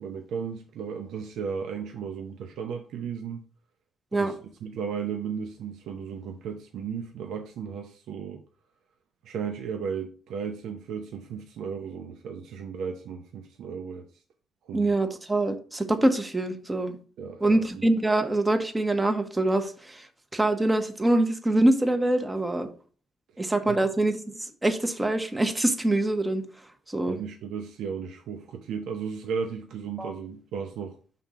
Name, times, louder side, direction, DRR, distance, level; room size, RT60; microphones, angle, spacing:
voice 1, 0.0-3.5 4.1-4.4 4.6-8.4 9.2-14.1 14.6-14.9 17.2-17.8 23.3-23.4 23.7-23.8 27.1-31.0, right 6 dB, 80° right, 0.7 m, -35 dB
voice 2, 14.7-16.9 17.4-20.1 20.3-22.7 23.4-26.4 26.9-27.2 30.0-30.1, right 1 dB, 15° right, 1.0 m, -24 dB
5.7 x 3.7 x 5.4 m
cardioid pair, 90°, 0 cm